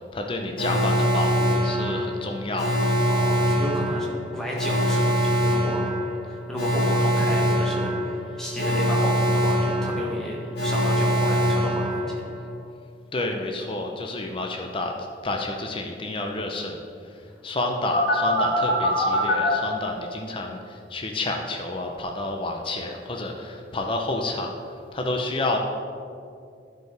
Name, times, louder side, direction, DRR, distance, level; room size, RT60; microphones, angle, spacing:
voice 1, 0.1-2.8 13.1-14.9 15.2-16.8 17.4-24.5 24.9-25.6, left 2 dB, 30° left, 2 dB, 0.5 m, -29 dB
Alarm, 0.6-12.5 17.9-19.5, equal, 60° left, 2.1 m, -23 dB
voice 2, 3.0-4.1 4.3-5.9 6.2-12.2, equal, 5° left, -4 dB, 1.3 m, -32 dB
11.0 x 4.7 x 4.6 m, 2.4 s
head